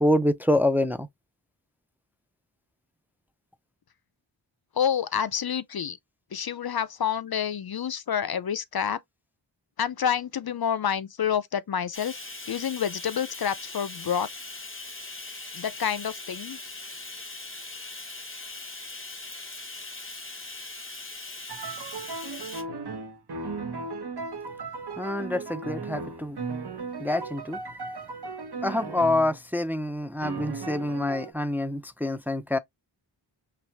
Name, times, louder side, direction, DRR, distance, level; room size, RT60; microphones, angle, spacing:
voice 1, 0.0-1.1 25.0-26.4 27.0-27.6 28.6-32.6, left 1 dB, 5° right, 0.5 m, -26 dB
voice 2, 4.8-6.0 6.3-9.0 9.8-12.2 12.5-14.3 15.5-16.6, left 8 dB, 55° left, 0.5 m, -28 dB
Bathtub (filling or washing), 11.9-22.6, left 2 dB, 25° left, 1.5 m, -40 dB
sound 1, 21.5-29.4 30.2-31.3, right 3 dB, 55° right, 1.0 m, -36 dB
5.8 x 2.4 x 3.3 m
wide cardioid pair, 55°, 46 cm